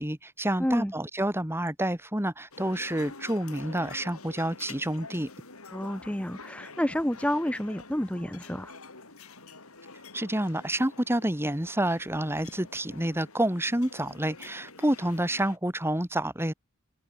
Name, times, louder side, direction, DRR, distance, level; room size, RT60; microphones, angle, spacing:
voice 1, 0.0-5.3 10.1-16.5, right 1 dB, 10° right, 3.4 m, -29 dB
voice 2, 0.6-0.9 5.7-8.8, equal, 5° left, 0.9 m, -29 dB
sound 1, 2.5-15.6, left 3 dB, 75° left, 5.7 m, -47 dB
head